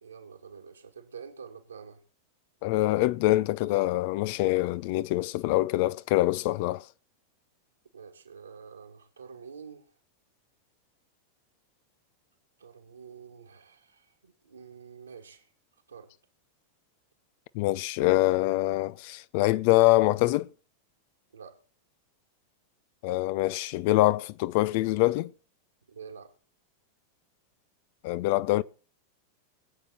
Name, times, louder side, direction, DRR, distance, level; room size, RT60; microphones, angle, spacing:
voice 1, 0.0-2.0 7.9-9.9 12.6-15.5 15.9-16.1 21.3-21.6 25.9-26.3, right 6 dB, 75° right, 2.6 m, -47 dB
voice 2, 2.6-6.8 17.5-20.5 23.0-25.3 28.0-28.6, left 18 dB, 50° left, 0.5 m, -24 dB
21.5 x 8.5 x 4.2 m
figure-of-eight pair, 90°, 0 cm